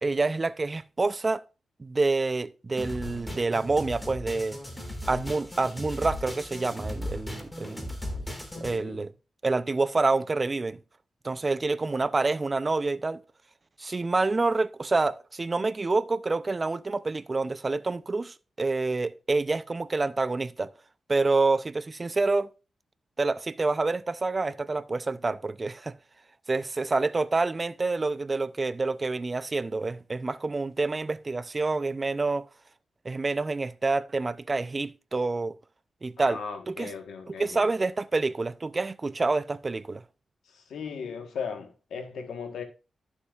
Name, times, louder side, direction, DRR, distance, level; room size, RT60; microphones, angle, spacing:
voice 1, 0.0-1.4 1.8-4.6 5.1-8.0 8.6-9.1 9.4-10.8 11.2-13.2 13.8-20.7 21.1-22.5 23.2-26.0 26.5-32.5 33.0-35.6 36.0-36.4 36.7-36.9 37.4-40.0, right 3 dB, 30° right, 0.5 m, -27 dB
sound 1, 2.8-8.8, left 1 dB, 10° left, 1.9 m, -37 dB
voice 2, 8.5-9.0 36.2-37.7 40.5-42.6, left 5 dB, 90° left, 1.2 m, -37 dB
11.5 x 7.1 x 2.4 m
cardioid pair, 85°, 0 cm